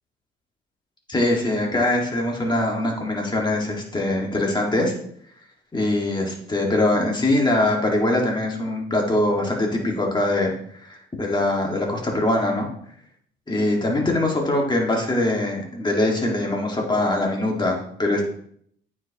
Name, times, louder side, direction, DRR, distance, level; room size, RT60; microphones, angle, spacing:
voice 1, 1.1-4.9 5.7-10.5 10.9-12.7 13.5-18.2, left 1 dB, 20° left, 0 dB, 1.8 m, -22 dB
9.1 x 4.9 x 2.9 m, 0.65 s
cardioid pair, 90°, 20 cm